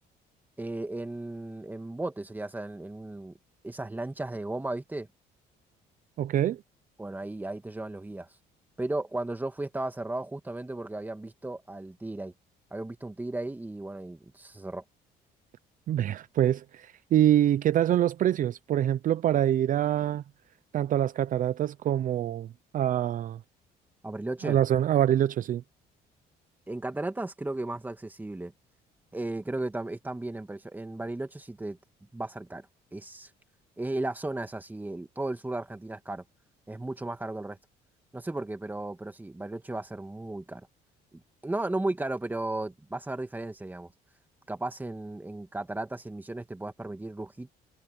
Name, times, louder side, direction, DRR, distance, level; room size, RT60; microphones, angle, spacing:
voice 1, 0.6-3.3 3.6-5.1 7.0-8.3 8.8-12.3 12.7-14.8 24.0-24.6 26.7-28.5 29.1-31.8 32.1-32.7 32.9-33.3 33.8-36.2 36.7-37.6 38.1-40.7 41.4-43.9 44.5-47.5, right 2 dB, 10° right, 2.3 m, -35 dB
voice 2, 6.2-6.6 15.9-20.2 20.7-22.5 22.7-23.4 24.4-25.6, right 11 dB, 50° right, 0.6 m, -25 dB
cardioid pair, 110°, 17 cm